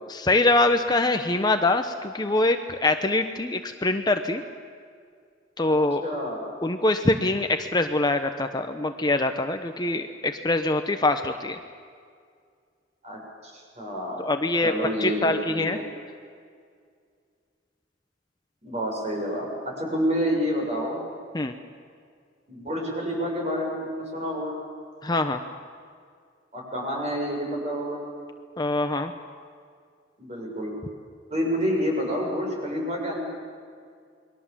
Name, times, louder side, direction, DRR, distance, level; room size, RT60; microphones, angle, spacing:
voice 1, 0.1-4.4 5.6-6.0 6.6-11.6 14.2-14.7 15.0-15.8 21.3-21.6 25.0-25.4 28.6-29.1, left 2 dB, 20° left, 7 dB, 0.9 m, -24 dB
voice 2, 6.0-6.6 13.0-14.3 14.6-15.8 18.6-21.0 22.5-24.5 26.5-28.0 30.2-30.7 31.3-33.2, equal, 35° right, -1 dB, 7.6 m, -28 dB
29.0 x 22.0 x 7.5 m, 2.2 s
head